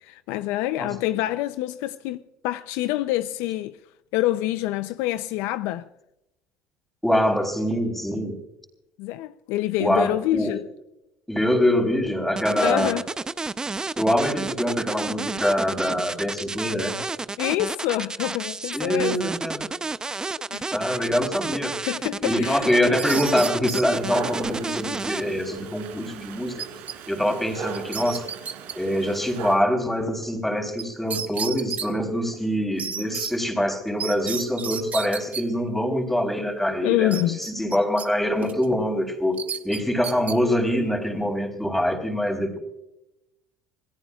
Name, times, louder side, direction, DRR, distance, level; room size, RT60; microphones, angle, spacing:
voice 1, 0.0-2.2 2.4-3.8 4.1-5.9 9.0-10.7 12.6-13.0 17.4-19.2 20.5-21.0 21.5-21.6 21.9-22.6 36.7-37.4, left 15 dB, 80° left, 0.5 m, -26 dB
voice 2, 7.0-8.4 9.8-10.5 11.3-13.0 14.0-17.0 18.7-19.7 20.7-21.8 22.2-26.6 27.1-28.3 28.7-42.6, equal, 5° left, 3.8 m, -24 dB
sound 1, 12.4-25.2, right 3 dB, 15° right, 0.6 m, -31 dB
sound 2, 22.7-23.9 26.6-27.0 27.3-27.4 27.7-28.7 30.8-30.9 31.1-31.9 32.8-33.3 34.0-35.4 37.1-38.1 38.4-38.7 39.4-40.4, right 7 dB, 35° right, 1.3 m, -32 dB
Dog, 23.9-29.6, right 7 dB, 80° right, 3.8 m, -38 dB
27.5 x 17.5 x 2.4 m
cardioid pair, 110°, 4 cm